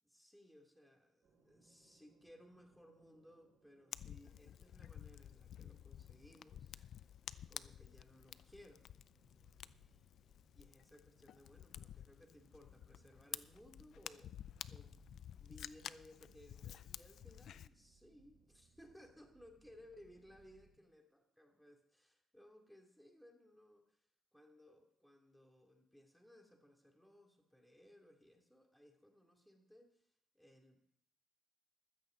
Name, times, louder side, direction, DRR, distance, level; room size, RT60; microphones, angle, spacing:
voice 1, 0.0-6.8 7.5-8.9 10.5-14.9 15.3-24.0 24.3-30.0 30.3-30.9, left 1 dB, ahead, 2 dB, 2.7 m, -62 dB
sound 1, 1.2-20.8, right 4 dB, 60° right, 5.9 m, -73 dB
Fire, 3.9-17.7, left 10 dB, 70° left, 0.4 m, -52 dB
14.5 x 13.0 x 4.0 m, 0.69 s
cardioid pair, 90°, 0 cm